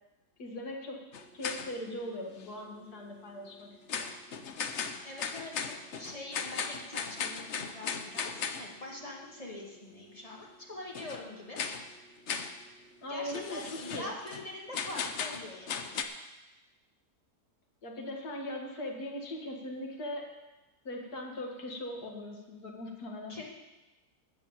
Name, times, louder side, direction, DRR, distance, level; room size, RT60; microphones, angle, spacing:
voice 1, 0.4-1.1 1.3-4.1 13.0-14.1 17.8-20.3 20.8-23.4, left 1 dB, 80° left, 1 dB, 2.3 m, -40 dB
sound 1, 1.1-1.9 2.4-2.5 3.9-8.7 10.9-11.2 11.6-11.9 12.3-12.6 13.3-14.5 14.7-16.0, left 6 dB, 55° left, 0.9 m, -37 dB
voice 2, 5.0-11.6 13.1-16.1 23.3-23.4, left 2 dB, 25° left, -2 dB, 2.0 m, -44 dB
13.5 x 4.9 x 8.7 m, 1.1 s
omnidirectional pair, 1.6 m